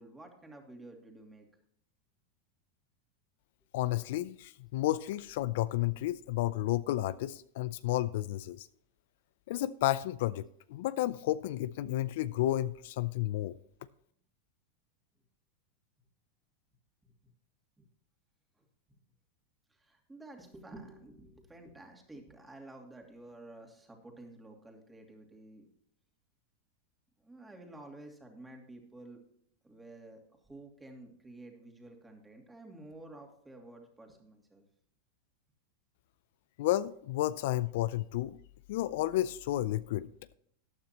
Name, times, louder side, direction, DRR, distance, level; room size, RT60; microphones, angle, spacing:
voice 1, 0.0-1.5 17.0-17.1 17.8-17.9 19.7-25.7 27.2-29.2 29.6-30.2 30.5-34.6, right 2 dB, 10° right, 2.5 m, -51 dB
voice 2, 3.7-8.7 9.5-13.5 36.6-38.4 38.7-40.1, left 15 dB, 65° left, 0.4 m, -32 dB
14.0 x 9.5 x 2.9 m
hypercardioid pair, 115°, 0 cm